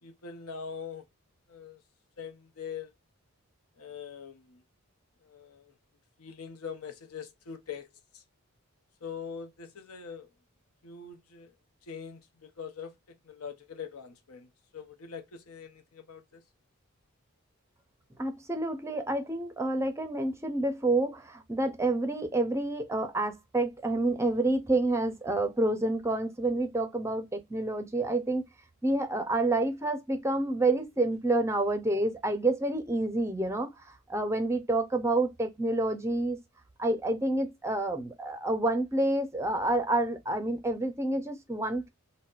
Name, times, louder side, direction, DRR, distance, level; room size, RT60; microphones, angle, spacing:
voice 1, 0.0-1.1 1.5-1.8 2.2-2.9 3.8-4.6 5.2-5.7 6.2-7.9 8.1-8.2 9.0-10.3 10.8-11.5 11.8-16.4, left 6 dB, 80° left, 0.7 m, -43 dB
voice 2, 18.2-28.4 28.8-33.7 34.1-36.4 36.8-41.9, right 2 dB, 10° right, 0.5 m, -28 dB
3.9 x 2.1 x 2.4 m
head